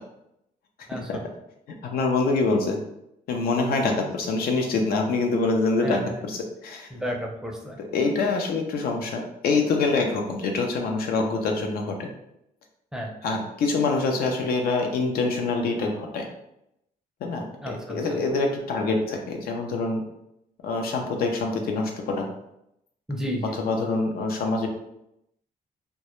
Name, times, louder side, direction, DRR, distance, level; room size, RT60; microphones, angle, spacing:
voice 1, 0.9-1.2 5.8-6.2 6.9-7.8 12.9-13.1 17.6-18.2 23.1-23.6, equal, 5° right, 0 dB, 0.5 m, -32 dB
voice 2, 1.8-2.8 3.3-6.9 7.8-12.1 13.2-16.3 17.2-20.0 20.6-22.3 23.6-24.7, left 3 dB, 75° left, 2 dB, 0.5 m, -25 dB
2.2 x 2.0 x 2.9 m, 0.81 s
cardioid pair, 95°, 16 cm